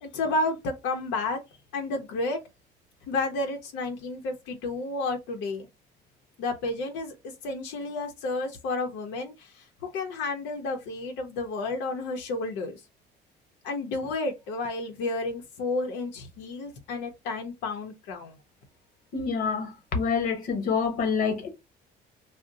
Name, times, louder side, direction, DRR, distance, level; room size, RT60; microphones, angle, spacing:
voice 1, 0.0-1.4 1.7-2.4 3.1-5.7 6.4-7.1 7.4-9.6 9.9-12.8 13.6-18.4, left 2 dB, 85° left, 0.7 m, -31 dB
voice 2, 19.1-21.5, left 5 dB, 50° left, 1.0 m, -27 dB
2.6 x 2.0 x 3.8 m
cardioid pair, 160°, 18 cm